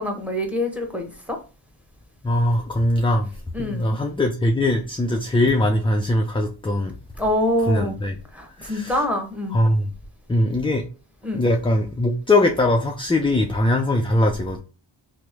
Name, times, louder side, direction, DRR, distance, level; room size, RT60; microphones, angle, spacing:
voice 1, 0.0-1.4 3.5-4.0 7.2-8.0 8.3-9.6 11.2-11.4, left 1 dB, 5° right, 0.9 m, -25 dB
voice 2, 2.2-3.3 3.6-7.0 7.7-8.2 8.6-9.0 9.5-9.9 10.3-10.8 11.3-14.6, left 1 dB, 15° left, 0.3 m, -21 dB
3.0 x 2.1 x 3.3 m
wide cardioid pair, 55°, 46 cm